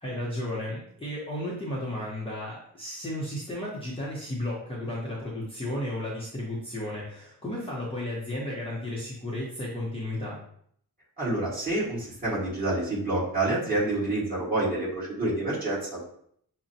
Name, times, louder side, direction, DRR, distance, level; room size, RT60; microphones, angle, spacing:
voice 1, 0.0-10.4, left 1 dB, 15° left, -7 dB, 0.8 m, -33 dB
voice 2, 11.2-16.1, right 2 dB, 25° right, -8 dB, 1.7 m, -28 dB
6.1 x 2.2 x 2.7 m, 0.65 s
wide cardioid pair, 145°, 37 cm